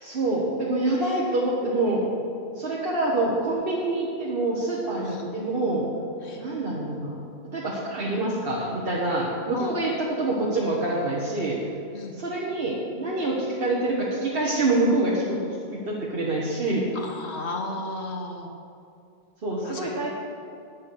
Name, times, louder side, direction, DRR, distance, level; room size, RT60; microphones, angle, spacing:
voice 1, 0.0-2.0 2.5-5.9 6.4-7.2 7.5-11.6 12.2-15.4 15.7-16.9 19.4-20.1, right 2 dB, 45° right, -5 dB, 1.4 m, -26 dB
voice 2, 16.9-18.5 19.6-20.1, left 2 dB, 50° left, 2 dB, 1.3 m, -35 dB
10.5 x 7.7 x 6.2 m, 2.6 s
omnidirectional pair, 1.5 m